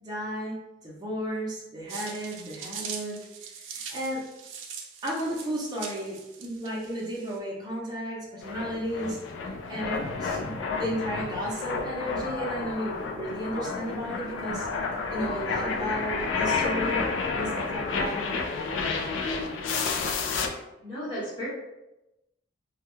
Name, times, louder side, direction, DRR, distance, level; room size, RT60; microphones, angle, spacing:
voice 1, 0.0-3.2 3.7-4.2 5.0-14.7 15.1-18.4, equal, 20° right, -4 dB, 0.6 m, -34 dB
sound 1, 1.9-7.4, right 6 dB, 85° right, 0.4 m, -41 dB
sound 2, 8.4-20.5, left 4 dB, 80° left, 0.3 m, -30 dB
voice 2, 20.8-21.5, equal, 25° left, -11 dB, 0.9 m, -34 dB
2.3 x 2.1 x 3.0 m, 0.94 s
head